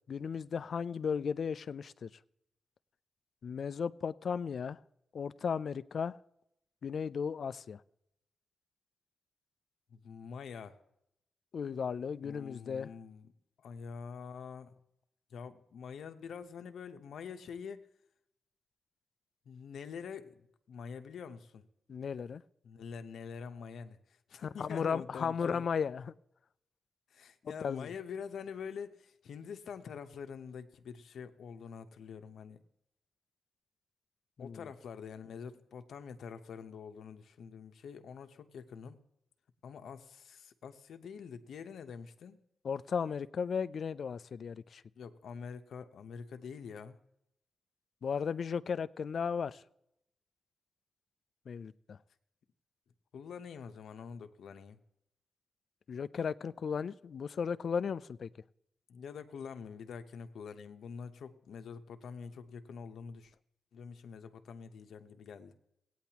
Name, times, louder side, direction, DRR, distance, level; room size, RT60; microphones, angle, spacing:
voice 1, 0.1-2.1 3.4-4.8 5.1-6.2 6.8-7.8 11.5-12.9 21.9-22.4 24.6-26.1 27.4-27.9 34.4-34.6 42.6-44.8 48.0-49.6 51.5-52.0 55.9-58.3, left 6 dB, 60° left, 15 dB, 0.4 m, -35 dB
voice 2, 9.9-10.8 12.2-13.3 13.6-14.7 15.3-17.9 19.5-21.7 22.6-25.7 27.1-32.6 34.4-39.0 39.6-42.4 45.0-47.0 53.1-54.8 58.9-63.3 63.7-65.5, left 6 dB, 80° left, 8 dB, 0.8 m, -46 dB
17.5 x 9.3 x 2.9 m, 0.80 s
cardioid pair, 80°, 0 cm